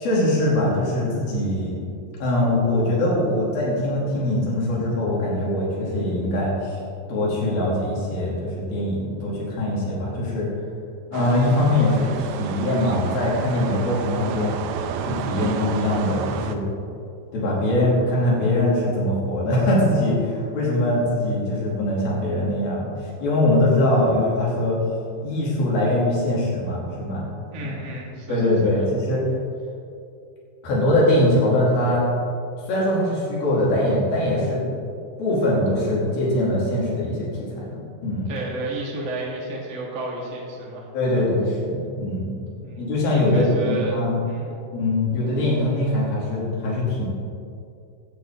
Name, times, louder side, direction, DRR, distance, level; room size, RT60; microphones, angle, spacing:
voice 1, 0.0-6.8 7.1-10.5 11.1-14.6 15.0-16.6 17.3-24.8 25.2-27.3 27.6-27.7 28.3-29.2 30.6-32.1 32.7-34.6 35.2-37.3 37.6-38.3 40.9-42.3 42.8-44.2 44.7-47.1, left 1 dB, 55° left, -5 dB, 4.6 m, -22 dB
sound 1, 11.1-16.6, right 7 dB, 80° right, 2.7 m, -31 dB
voice 2, 27.5-28.9 38.2-41.2 42.6-43.0 43.3-44.6, right 2 dB, 30° right, -3 dB, 1.4 m, -32 dB
16.5 x 10.5 x 3.8 m, 2.5 s
omnidirectional pair, 5.2 m